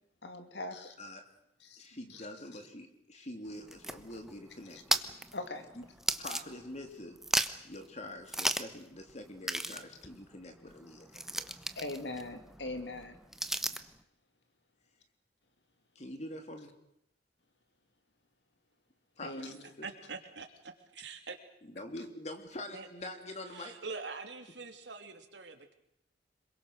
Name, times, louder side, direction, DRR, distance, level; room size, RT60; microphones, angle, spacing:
voice 1, 0.2-0.9 1.7-1.8 5.3-5.7 11.8-13.2 19.2-19.6, left 2 dB, 70° left, 8 dB, 2.5 m, -40 dB
voice 2, 1.8-5.0 5.7-5.8 6.2-7.2 7.6-11.5 16.0-16.7 19.2-19.9 21.8-23.8, left 1 dB, 40° left, 5 dB, 3.4 m, -45 dB
sound 1, 3.5-6.9 7.2-7.8 8.3-8.8 9.1-9.2 9.4-14.0, right 1 dB, ahead, 1.0 m, -36 dB
voice 3, 19.8-21.4 22.7-22.9 23.5-25.7, right 4 dB, 75° right, 6 dB, 3.0 m, -44 dB
26.5 x 22.5 x 6.7 m, 0.77 s
head